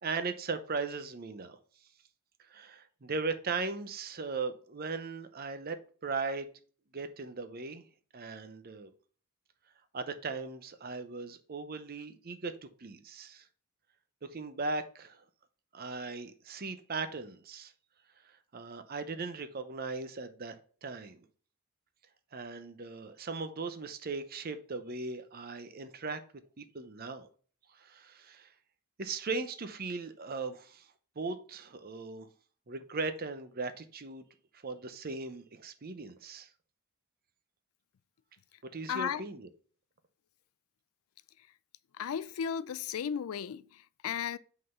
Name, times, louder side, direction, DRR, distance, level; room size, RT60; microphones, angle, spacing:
voice 1, 0.0-1.6 2.5-6.5 6.9-7.9 8.1-8.9 9.9-13.4 14.3-15.2 15.7-17.7 18.5-20.5 20.8-21.2 22.3-26.2 26.6-27.3 27.7-28.5 29.0-30.9 31.2-32.3 32.7-34.2 34.6-36.5 38.7-39.5, right 4 dB, 45° right, 0.7 m, -38 dB
voice 2, 38.9-39.3 42.0-44.4, left 8 dB, 75° left, 0.4 m, -35 dB
5.4 x 3.9 x 5.4 m
head